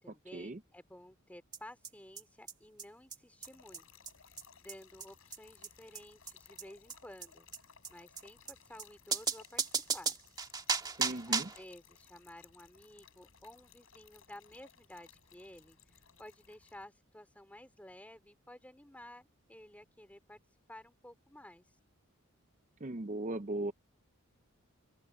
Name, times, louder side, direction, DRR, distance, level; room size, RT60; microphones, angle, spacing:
voice 1, 0.0-3.8 4.6-7.5 7.9-10.2 11.3-20.4 20.7-21.7, left 1 dB, 5° left, 2.7 m, -54 dB
sound 1, 1.5-1.6 1.8-1.9 2.2-2.3 2.5-2.6 2.8-2.9 3.1-3.2 3.4-3.5 3.7-3.8 4.1-4.2 4.4-4.5 4.7-4.8 5.0-5.1 5.3-5.4 5.6-5.7 6.0-6.1 6.3-6.4 6.6-6.7 6.9-7.0 7.2-7.3 7.5-7.6 7.8-7.9 8.2-8.3 8.5-8.6 8.8-8.9 9.1-11.6, right 5 dB, 20° right, 1.7 m, -35 dB
Trickle dribble / Fill (with liquid), 3.4-16.9, left 8 dB, 70° left, 5.6 m, -61 dB
voice 2, 11.0-11.5 22.8-23.7, right 2 dB, 35° right, 0.7 m, -37 dB
open air
head